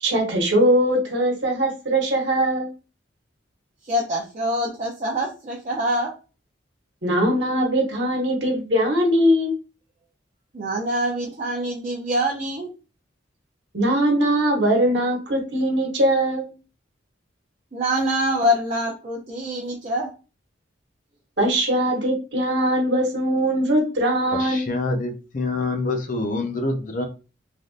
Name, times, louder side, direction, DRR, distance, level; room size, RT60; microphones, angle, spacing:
voice 1, 0.0-2.7 7.0-9.5 13.7-16.5 21.4-24.7, right 1 dB, 60° right, 1.1 m, -21 dB
voice 2, 3.8-6.1 10.5-12.7 17.7-20.1, equal, 35° right, 0.5 m, -25 dB
voice 3, 24.3-27.1, left 2 dB, 40° left, 0.5 m, -26 dB
3.3 x 2.5 x 2.4 m
head